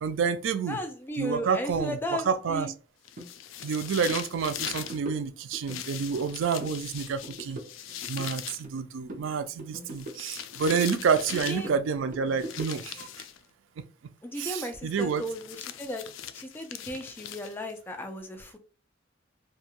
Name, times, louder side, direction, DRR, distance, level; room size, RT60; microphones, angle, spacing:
voice 1, 0.0-0.8 1.2-2.7 3.6-7.6 8.1-13.1 14.4-15.3, right 6 dB, 75° right, 0.4 m, -29 dB
voice 2, 0.7-2.7 11.5-11.7 14.2-16.0 16.3-18.6, equal, 10° left, 0.4 m, -35 dB
sound 1, 3.0-5.0 5.7-8.6 9.9-11.7 12.4-13.4 15.0-17.8, left 10 dB, 80° left, 0.3 m, -40 dB
sound 2, 3.2-3.3 3.6-3.8 4.1-4.2 4.6-5.8 6.2-6.8 7.1-8.8 9.1-10.9 11.2-13.0, right 1 dB, 45° right, 0.7 m, -42 dB
2.5 x 2.3 x 2.8 m
head